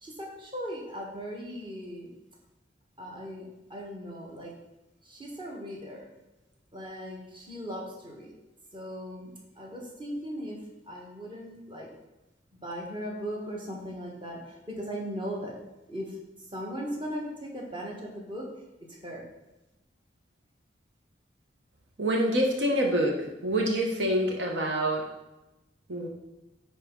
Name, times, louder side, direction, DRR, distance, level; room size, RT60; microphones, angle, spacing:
voice 1, 0.0-2.1 3.0-4.5 5.0-6.0 6.7-8.3 8.7-10.6 10.9-11.9 12.6-15.6 15.9-16.2 16.5-18.5 18.9-19.2, equal, 25° right, -1 dB, 1.5 m, -38 dB
voice 2, 22.0-23.2 23.4-25.0 25.9-26.1, right 1 dB, 80° right, 1 dB, 1.1 m, -26 dB
9.7 x 4.2 x 3.8 m, 1.0 s
head